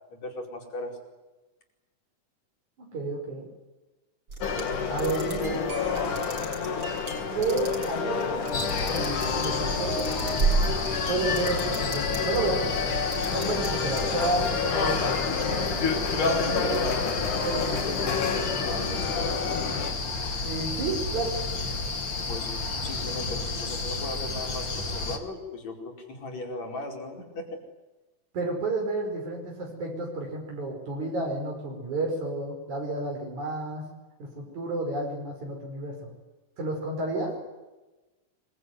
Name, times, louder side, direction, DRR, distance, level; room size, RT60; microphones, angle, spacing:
voice 1, 0.1-1.0 16.3-17.2 17.6-19.4 22.3-22.5 22.8-27.6, left 2 dB, 60° left, 2 dB, 6.2 m, -37 dB
voice 2, 2.8-3.5 4.9-5.7 7.3-8.3 8.9-10.1 11.1-12.7 13.3-15.7 16.3-16.9 17.4-17.8 20.4-21.4 28.3-33.8 34.2-35.9 36.6-37.4, right 2 dB, 70° right, 1 dB, 6.8 m, -31 dB
sound 1, 4.3-12.4 12.7-13.7 14.0-16.4, right 3 dB, 45° right, 7.1 m, -34 dB
sound 2, 4.4-19.9, left 5 dB, 85° left, 4.0 m, -29 dB
sound 3, 8.5-25.2, left 3 dB, 40° left, 3.0 m, -32 dB
26.0 x 23.0 x 9.7 m, 1.1 s
omnidirectional pair, 3.5 m